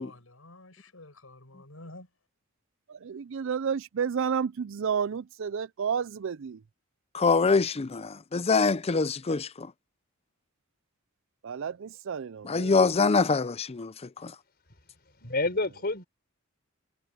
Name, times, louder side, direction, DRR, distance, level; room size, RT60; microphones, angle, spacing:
voice 1, 0.0-2.1, left 2 dB, 90° left, 5.4 m, -49 dB
voice 2, 3.0-6.6 11.4-12.8, right 7 dB, 65° right, 0.4 m, -31 dB
voice 3, 7.1-9.7 12.4-14.3, left 4 dB, 30° left, 0.5 m, -25 dB
voice 4, 15.2-16.1, left 2 dB, 50° left, 5.1 m, -28 dB
head